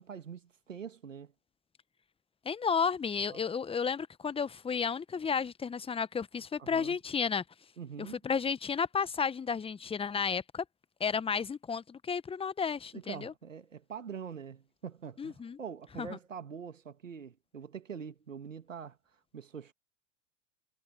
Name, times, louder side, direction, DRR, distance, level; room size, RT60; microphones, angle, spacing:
voice 1, 0.0-1.3 3.3-3.4 6.6-7.0 7.8-8.2 12.9-19.0 19.3-19.7, right 7 dB, 85° right, 2.2 m, -44 dB
voice 2, 2.4-7.4 8.0-10.6 11.0-13.3 15.2-15.6 16.0-16.1, left 6 dB, 15° left, 1.2 m, -32 dB
figure-of-eight pair, 90°, 37 cm